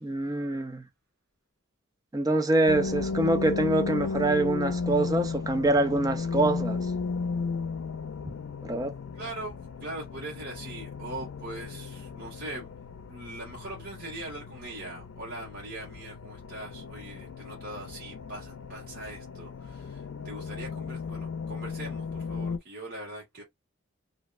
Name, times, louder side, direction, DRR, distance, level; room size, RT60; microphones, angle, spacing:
voice 1, 0.0-0.8 2.1-6.9 8.7-8.9, right 2 dB, 20° right, 0.4 m, -25 dB
sound 1, 2.7-22.6, left 4 dB, 80° left, 0.5 m, -35 dB
voice 2, 9.1-12.7 13.1-23.4, right 1 dB, 50° right, 1.4 m, -41 dB
3.2 x 2.7 x 2.4 m
head